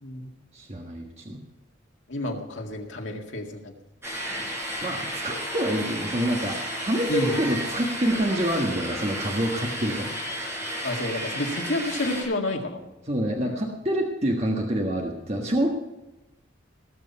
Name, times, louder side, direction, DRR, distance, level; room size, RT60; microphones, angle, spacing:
voice 1, 0.5-1.4 4.8-6.6 6.8-10.1 13.1-15.7, right 1 dB, 35° right, 1 dB, 1.4 m, -27 dB
voice 2, 2.1-3.7 7.1-7.4 10.8-12.8 13.4-13.6, left 2 dB, 80° left, 2 dB, 2.0 m, -30 dB
sound 1, 4.0-12.2, equal, 15° right, 4.5 m, -32 dB
18.5 x 7.5 x 5.7 m, 0.96 s
head